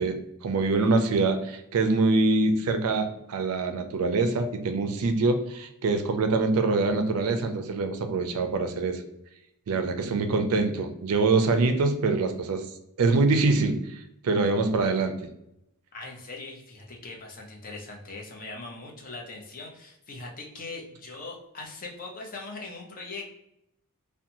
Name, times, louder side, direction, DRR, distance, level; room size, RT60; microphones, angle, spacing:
voice 1, 0.0-9.0 9.7-12.7 13.0-15.2, right 3 dB, 70° right, 7 dB, 0.4 m, -24 dB
voice 2, 15.9-23.3, left 3 dB, 40° left, 0 dB, 0.6 m, -40 dB
2.8 x 2.2 x 2.6 m, 0.80 s
head